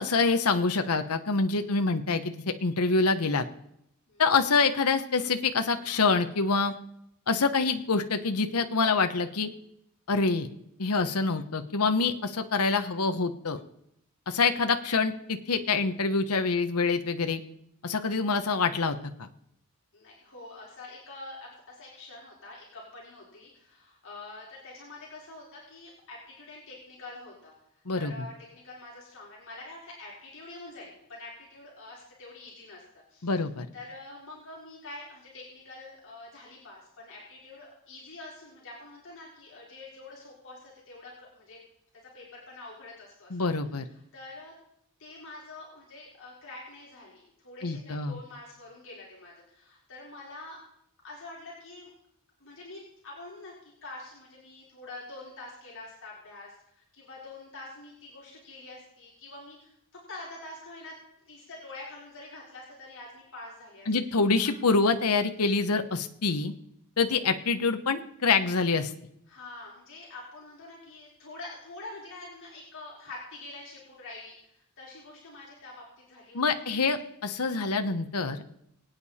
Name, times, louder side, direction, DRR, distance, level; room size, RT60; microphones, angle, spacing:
voice 1, 0.0-3.4 4.2-6.7 7.3-9.5 10.1-10.5 10.8-13.6 14.3-17.4 17.8-19.3 27.9-28.2 33.2-33.7 43.3-43.9 47.6-48.2 63.9-66.5 67.0-68.9 76.3-78.4, left 4 dB, 85° left, 7 dB, 1.0 m, -26 dB
voice 2, 19.9-32.8 33.1-33.3 33.7-41.6 42.1-43.5 44.1-44.5 45.0-50.6 51.0-51.9 52.4-61.0 61.2-63.9 64.4-64.5 69.3-77.0, left 2 dB, 60° left, -5 dB, 4.4 m, -46 dB
23.5 x 9.1 x 4.3 m, 0.75 s
head